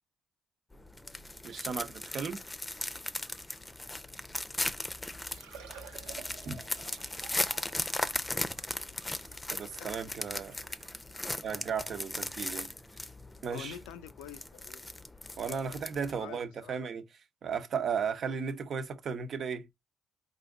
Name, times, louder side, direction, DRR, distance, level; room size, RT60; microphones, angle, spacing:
sound 1, 0.7-16.2, left 1 dB, 15° left, 0.7 m, -38 dB
voice 1, 1.4-2.4 6.5-6.6 9.5-10.6 11.4-12.7 13.4-13.8 15.4-17.0 17.4-19.7, right 6 dB, 60° right, 0.9 m, -35 dB
Liquid, 5.1-10.9 11.6-11.7 12.2-12.3 13.9-14.0 14.2-14.3, right 8 dB, 90° right, 1.0 m, -52 dB
voice 2, 13.5-14.9 15.4-15.7 16.2-16.8, left 10 dB, 85° left, 0.6 m, -47 dB
4.2 x 2.6 x 3.6 m
hypercardioid pair, 50°, 0 cm